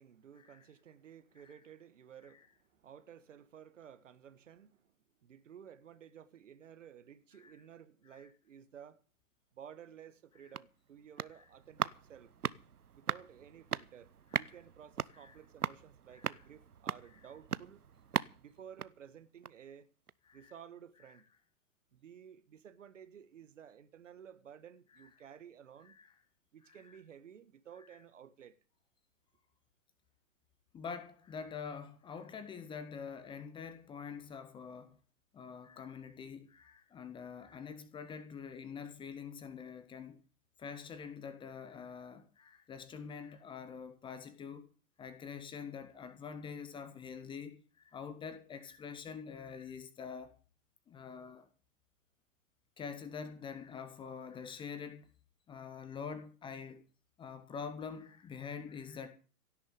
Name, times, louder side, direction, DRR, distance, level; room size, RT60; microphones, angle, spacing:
voice 1, 0.0-4.9 5.2-9.0 9.5-12.3 12.9-17.8 18.4-19.9 20.3-21.2 21.9-25.9 26.5-28.6, right 8 dB, 55° right, 1.6 m, -54 dB
sound 1, 10.2-19.7 20.1-20.2, right 7 dB, 75° right, 0.8 m, -40 dB
voice 2, 30.7-35.0 35.3-40.2 40.6-44.7 45.0-50.3 50.9-51.5 52.8-55.1 55.5-56.8 57.2-59.1, left 6 dB, 10° left, 1.2 m, -45 dB
17.0 x 7.1 x 9.2 m
figure-of-eight pair, 120°, 45 cm